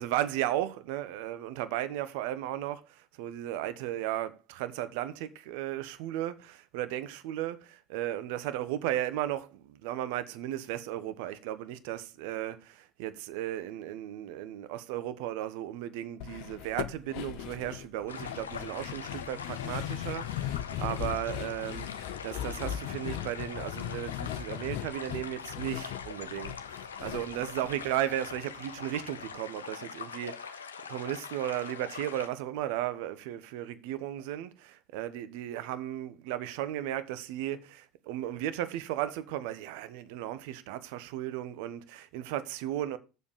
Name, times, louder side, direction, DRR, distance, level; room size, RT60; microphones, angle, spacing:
voice 1, 0.0-26.6 27.0-43.0, right 13 dB, 60° right, 1.1 m, -35 dB
sound 1, 16.2-28.5 28.8-28.9 29.2-29.3, left 12 dB, 60° left, 0.7 m, -38 dB
sound 2, 18.1-32.3, left 6 dB, 80° left, 0.9 m, -43 dB
7.4 x 7.0 x 6.9 m
figure-of-eight pair, 70°, 0 cm